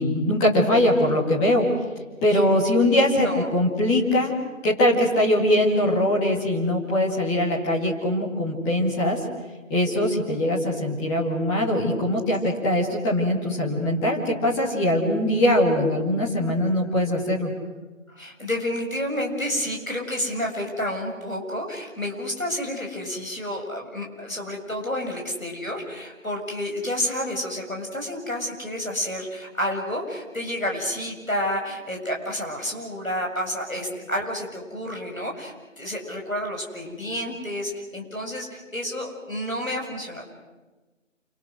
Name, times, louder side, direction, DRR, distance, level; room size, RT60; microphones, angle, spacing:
voice 1, 0.0-1.7 2.2-4.3 4.6-9.2 9.7-17.5, left 1 dB, 5° left, -4 dB, 2.1 m, -22 dB
voice 2, 3.1-3.5 18.1-40.3, equal, 90° left, 1 dB, 7.7 m, -30 dB
28.5 x 26.0 x 6.4 m, 1.2 s
figure-of-eight pair, 155°, 40 cm